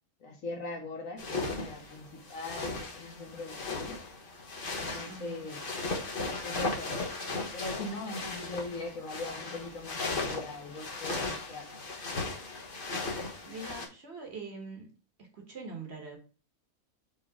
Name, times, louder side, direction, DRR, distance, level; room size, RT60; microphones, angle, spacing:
voice 1, 0.2-4.0 4.7-5.6 6.4-7.0 7.5-11.8, left 2 dB, 65° left, 3 dB, 1.8 m, -41 dB
sound 1, 1.2-13.9, left 3 dB, 40° left, 1.4 m, -37 dB
voice 2, 5.0-5.5 13.5-14.9 15.2-16.2, right 3 dB, 45° right, 2 dB, 1.9 m, -43 dB
5.1 x 3.8 x 4.8 m, 0.36 s
omnidirectional pair, 1.5 m